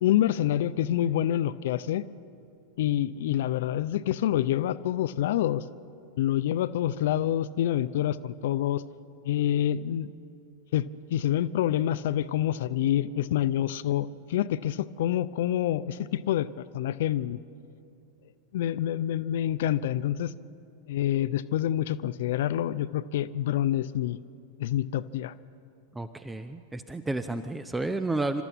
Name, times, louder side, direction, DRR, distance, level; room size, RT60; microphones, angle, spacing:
voice 1, 0.0-2.0 2.8-5.6 6.2-8.8 9.2-10.1 10.7-16.5 16.7-17.4 18.5-20.3 20.9-24.2 24.6-25.3, left 12 dB, 55° left, 16 dB, 0.5 m, -27 dB
voice 2, 25.9-28.4, right 2 dB, 10° right, 10 dB, 0.7 m, -31 dB
28.5 x 13.5 x 7.2 m, 2.6 s
figure-of-eight pair, 90°, 0 cm